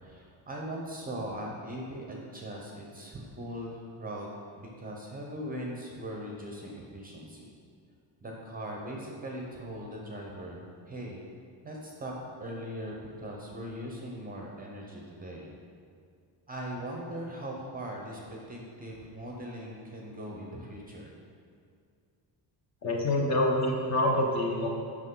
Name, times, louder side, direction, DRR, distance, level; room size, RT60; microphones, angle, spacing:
voice 1, 0.0-4.3 4.5-7.5 8.2-11.2 11.6-12.1 12.4-15.5 16.5-21.1, right 1 dB, 20° right, -1 dB, 0.7 m, -40 dB
voice 2, 22.8-24.7, left 1 dB, 35° left, 0 dB, 0.9 m, -26 dB
8.0 x 5.9 x 3.8 m, 2.3 s
cardioid pair, 180°, 44 cm